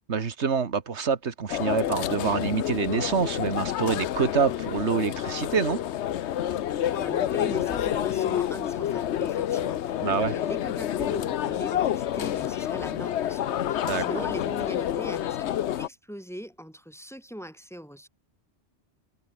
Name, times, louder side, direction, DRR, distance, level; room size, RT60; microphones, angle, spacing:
voice 1, 0.1-5.8 10.0-10.3 13.9-14.2, right 6 dB, 75° right, 1.8 m, -26 dB
sound 1, 1.5-15.9, left 11 dB, 80° left, 1.0 m, -28 dB
voice 2, 6.9-18.1, equal, ahead, 5.2 m, -40 dB
omnidirectional pair, 1.2 m